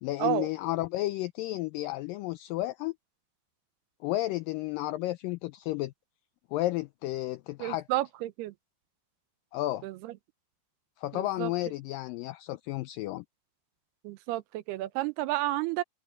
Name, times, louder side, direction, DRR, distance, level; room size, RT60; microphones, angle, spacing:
voice 1, 0.0-2.9 4.0-5.9 6.5-7.8 9.5-9.8 11.0-13.3, left 17 dB, 85° left, 2.0 m, -32 dB
voice 2, 7.6-8.5 9.8-10.1 11.1-11.5 14.0-15.8, right 16 dB, 90° right, 2.9 m, -31 dB
omnidirectional pair, 4.5 m